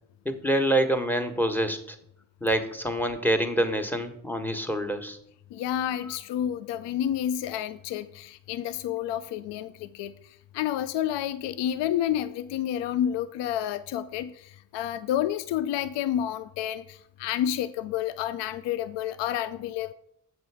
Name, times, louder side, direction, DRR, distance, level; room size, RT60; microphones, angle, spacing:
voice 1, 0.2-2.0 2.4-5.2 6.1-6.2, right 1 dB, 5° left, 7 dB, 1.4 m, -26 dB
voice 2, 5.5-10.1 10.5-19.9, left 11 dB, 70° left, 14 dB, 0.5 m, -30 dB
7.5 x 6.0 x 4.8 m, 0.74 s
hypercardioid pair, 40°, 44 cm